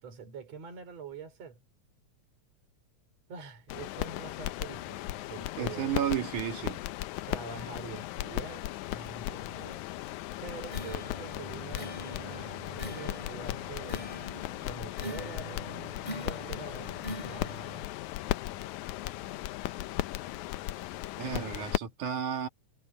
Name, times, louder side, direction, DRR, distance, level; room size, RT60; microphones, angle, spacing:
voice 1, 0.0-1.6 3.3-6.0 7.3-9.9 10.4-14.1 14.6-17.6, right 5 dB, 60° right, 5.3 m, -45 dB
sound 1, 3.7-21.8, left 15 dB, 85° left, 2.1 m, -37 dB
voice 2, 5.6-6.8 21.2-22.5, right 9 dB, 90° right, 3.7 m, -32 dB
sound 2, 10.7-17.9, left 1 dB, 15° left, 2.4 m, -43 dB
omnidirectional pair, 3.4 m